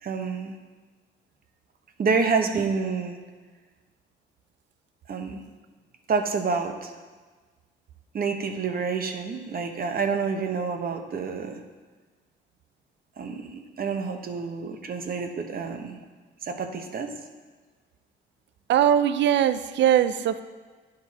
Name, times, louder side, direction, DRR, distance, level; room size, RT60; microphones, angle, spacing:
voice 1, 0.0-0.5 2.0-3.2 5.1-5.4 6.1-7.0 8.1-11.6 13.2-16.0 16.4-17.1, right 5 dB, 50° right, 5 dB, 0.9 m, -28 dB
voice 2, 18.7-20.5, right 10 dB, 65° right, 13 dB, 0.5 m, -21 dB
10.0 x 5.2 x 4.1 m, 1.4 s
cardioid pair, 90°, 20 cm